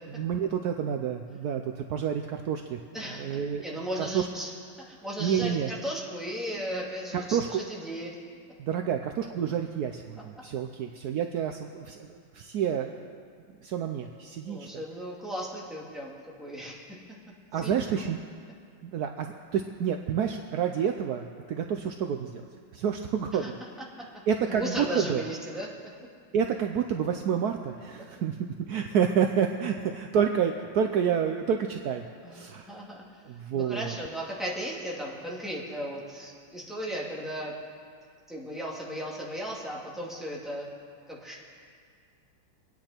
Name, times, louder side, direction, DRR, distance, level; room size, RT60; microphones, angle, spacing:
voice 1, 0.2-2.8 3.1-4.3 5.2-5.7 7.1-7.6 8.6-12.9 13.6-14.7 17.5-18.2 18.8-22.4 22.7-23.5 24.3-25.2 26.3-28.4 28.7-32.0 32.3-32.7 33.3-33.9, right 8 dB, 75° right, 4 dB, 0.9 m, -29 dB
voice 2, 2.9-3.3 3.6-4.5 4.9-8.1 14.4-17.0 17.6-18.0 23.4-23.5 24.5-25.7 32.2-33.0 33.5-37.5 38.3-40.7 41.1-41.4, equal, ahead, -5 dB, 2.4 m, -36 dB
25.0 x 9.8 x 4.4 m, 2.1 s
omnidirectional pair, 2.4 m